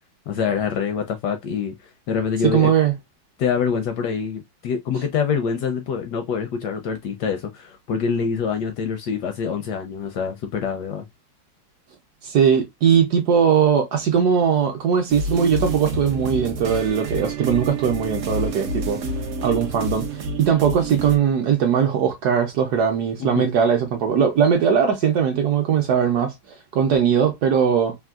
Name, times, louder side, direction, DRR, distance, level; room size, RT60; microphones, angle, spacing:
voice 1, 0.3-1.7 2.1-2.7 3.4-11.1 23.2-23.5, left 6 dB, 75° left, 1.0 m, -25 dB
voice 2, 2.4-2.9 12.2-19.0 19.4-20.1 20.4-27.9, right 7 dB, 70° right, 1.0 m, -20 dB
sound 1, 15.1-21.2, right 1 dB, 85° right, 0.6 m, -29 dB
3.6 x 2.4 x 2.3 m
omnidirectional pair, 2.2 m